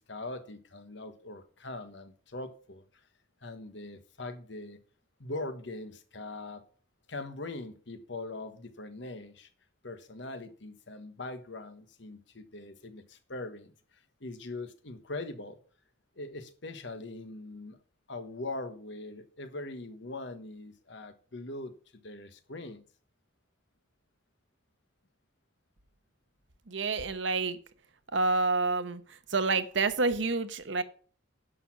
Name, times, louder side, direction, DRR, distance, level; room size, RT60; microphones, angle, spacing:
voice 1, 0.0-2.8 3.4-4.8 5.2-6.6 7.1-9.5 9.8-15.6 16.2-17.8 18.1-22.8, left 2 dB, 65° left, 1.3 m, -41 dB
voice 2, 26.7-27.6 28.1-30.8, right 3 dB, 65° right, 1.0 m, -28 dB
11.0 x 6.2 x 5.9 m
head